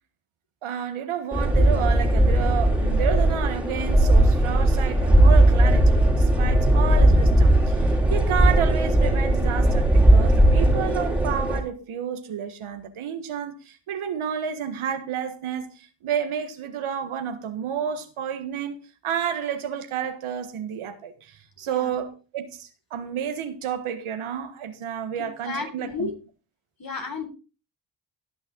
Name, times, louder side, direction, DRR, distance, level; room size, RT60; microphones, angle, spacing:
voice 1, 0.6-7.8 8.1-18.8 19.0-26.1, right 8 dB, 85° right, 1.6 m, -30 dB
sound 1, 1.3-11.6, right 1 dB, 5° right, 3.0 m, -18 dB
voice 2, 25.2-26.1 26.8-27.3, left 4 dB, 45° left, 3.6 m, -32 dB
18.0 x 6.4 x 3.8 m
cardioid pair, 60°, 49 cm